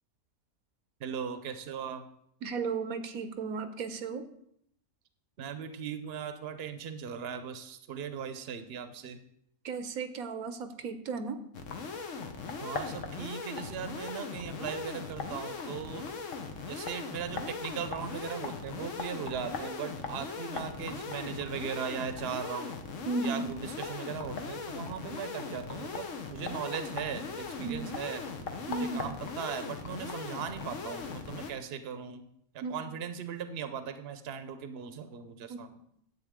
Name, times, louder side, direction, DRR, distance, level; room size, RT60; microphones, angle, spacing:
voice 1, 1.0-2.1 5.4-9.2 12.6-16.1 16.7-22.8 23.2-28.3 28.8-32.2 32.5-35.7, right 7 dB, 55° right, 9 dB, 0.9 m, -38 dB
voice 2, 2.4-4.2 9.6-11.4 23.0-23.5 27.6-27.9 28.7-29.1 32.6-32.8 35.5-35.6, right 4 dB, 85° right, 9 dB, 1.2 m, -34 dB
sound 1, 11.5-31.5, left 4 dB, 60° left, 1.3 m, -39 dB
10.5 x 7.8 x 3.7 m, 0.74 s
omnidirectional pair, 1.5 m